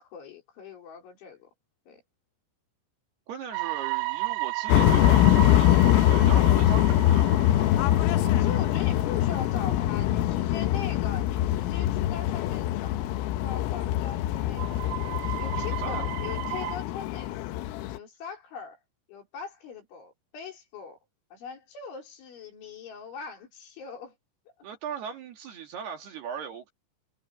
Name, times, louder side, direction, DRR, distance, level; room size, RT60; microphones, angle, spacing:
voice 1, 0.0-1.5 1.9-2.0 8.4-15.1 15.4-17.3 17.9-18.8 19.1-21.0 21.3-24.2, left 6 dB, 65° left, 7.1 m, -41 dB
voice 2, 3.3-7.3 15.8-16.1 24.6-26.7, right 7 dB, 60° right, 3.8 m, -38 dB
sound 1, 3.5-10.2 10.7-10.8 11.1-11.2 14.5-16.8, right 24 dB, 85° right, 3.4 m, -34 dB
sound 2, 4.7-18.0, left 13 dB, 85° left, 3.6 m, -23 dB
omnidirectional pair, 5.9 m